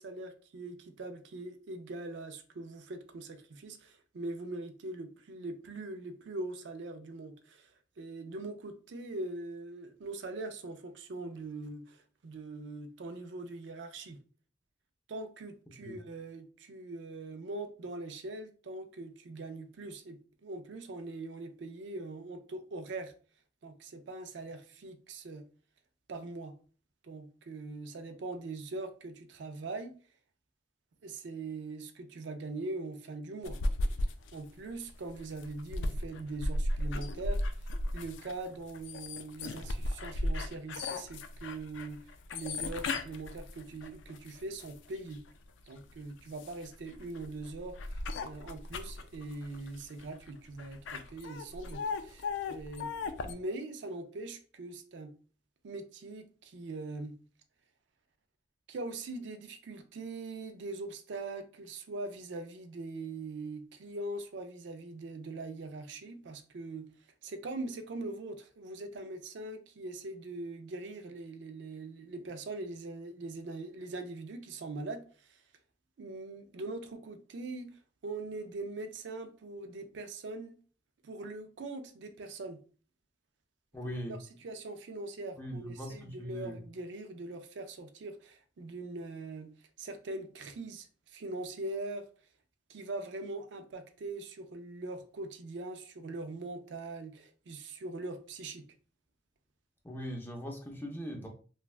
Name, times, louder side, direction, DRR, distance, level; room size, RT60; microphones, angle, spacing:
voice 1, 0.0-7.7 8.0-14.2 15.1-23.1 23.6-25.4 26.1-26.5 27.0-29.9 31.0-33.6 34.3-37.7 37.9-45.2 45.7-52.9 53.2-55.1 55.6-57.1 58.7-66.9 67.2-75.4 76.0-77.7 78.0-80.6 81.0-82.6 83.8-89.5 89.8-92.1 92.7-98.6, right 2 dB, 70° right, 0.4 m, -42 dB
sound 1, 33.4-45.2 45.7-53.3, left 2 dB, 85° left, 0.3 m, -36 dB
voice 2, 83.7-84.2 85.3-86.6 99.8-101.3, equal, 10° left, 0.5 m, -40 dB
3.2 x 2.2 x 2.4 m
head